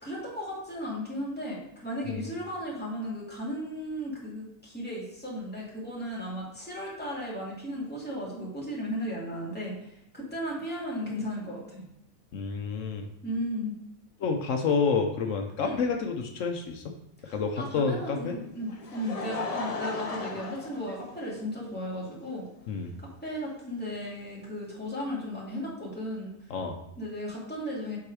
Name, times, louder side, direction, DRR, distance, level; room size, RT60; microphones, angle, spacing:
voice 1, 0.0-11.8 13.2-13.7 15.6-15.8 17.2-22.5 23.2-26.5 27.0-28.0, equal, 5° left, -6 dB, 2.6 m, -35 dB
voice 2, 12.3-13.1 14.2-16.9 17.3-18.4 22.7-22.9 26.5-26.8, left 5 dB, 75° left, 4 dB, 1.1 m, -29 dB
Laughter, 18.4-21.6 22.4-22.5 24.0-24.1, left 3 dB, 35° left, 0.7 m, -36 dB
7.5 x 4.7 x 4.9 m, 0.84 s
omnidirectional pair, 1.3 m